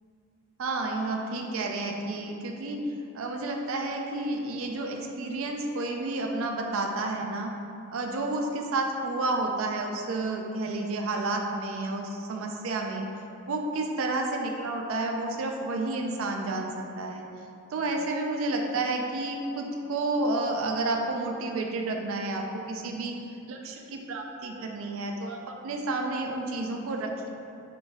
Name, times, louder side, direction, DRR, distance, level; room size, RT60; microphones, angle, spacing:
voice 1, 0.6-2.8 3.1-7.5 7.9-13.0 13.5-17.2 17.7-23.1 23.5-27.3, right 2 dB, 70° right, 2 dB, 0.4 m, -30 dB
3.7 x 3.5 x 2.5 m, 2.6 s
head